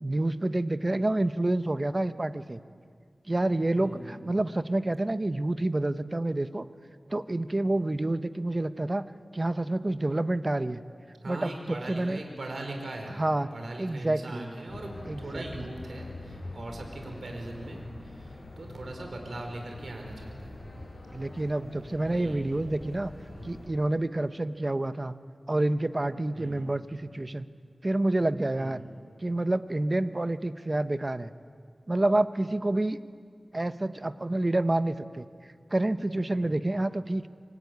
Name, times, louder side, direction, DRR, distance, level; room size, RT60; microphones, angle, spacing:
voice 1, 0.0-2.6 3.3-6.7 7.1-9.0 9.3-10.8 11.3-11.5 11.9-12.2 13.2-13.5 13.8-14.5 15.1-15.4 21.1-23.1 23.4-25.1 25.5-27.5 27.8-28.8 29.2-31.3 31.9-33.0 33.5-35.3 35.7-37.3, right 2 dB, 30° right, 11 dB, 1.1 m, -28 dB
voice 2, 3.8-4.3 11.2-13.2 13.5-20.6 21.9-22.5 23.3-23.5 26.3-26.6 28.6-28.9 36.3-36.7, right 2 dB, 75° right, 3 dB, 5.0 m, -40 dB
sound 1, 14.7-23.7, left 2 dB, 60° left, 6.2 m, -44 dB
26.0 x 24.0 x 9.6 m, 2.1 s
wide cardioid pair, 65°, 0 cm